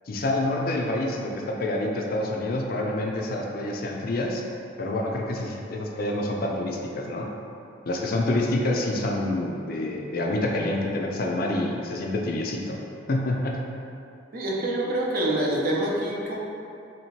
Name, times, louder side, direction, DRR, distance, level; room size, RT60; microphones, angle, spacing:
voice 1, 0.1-4.4 4.8-7.3 7.9-12.8 13.1-13.6, left 1 dB, 50° left, 0 dB, 0.4 m, -27 dB
voice 2, 14.3-16.4, right 1 dB, 50° right, -3 dB, 0.6 m, -26 dB
3.2 x 2.8 x 4.4 m, 2.7 s
head